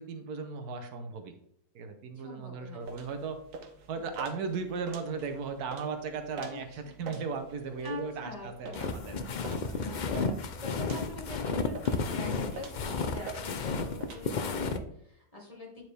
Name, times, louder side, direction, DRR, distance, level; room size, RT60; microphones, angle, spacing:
voice 1, 0.0-1.4 1.7-3.4 3.9-9.2, right 5 dB, 85° right, 7 dB, 1.4 m, -36 dB
voice 2, 2.1-2.8 3.9-4.1 6.5-7.1 7.8-8.8 9.7-15.8, left 2 dB, 25° left, -4 dB, 2.6 m, -45 dB
sound 1, 2.8-14.2, right 4 dB, 65° right, 1.3 m, -47 dB
sound 2, 8.7-14.8, left 4 dB, 85° left, 0.4 m, -32 dB
9.5 x 4.4 x 3.3 m, 0.73 s
omnidirectional pair, 1.6 m